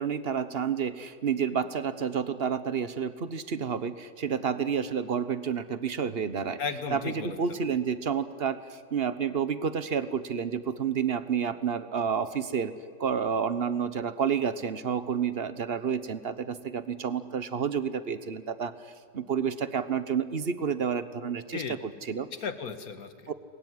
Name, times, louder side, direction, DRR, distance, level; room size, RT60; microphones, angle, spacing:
voice 1, 0.0-6.6 6.9-8.6 8.9-12.7 13.0-18.7 19.1-22.3 23.3-23.4, right 7 dB, 40° right, 13 dB, 1.1 m, -30 dB
voice 2, 6.6-7.4 21.5-21.8 22.3-23.3, left 5 dB, 55° left, 10 dB, 1.9 m, -35 dB
28.0 x 21.5 x 9.7 m, 2.1 s
omnidirectional pair, 2.0 m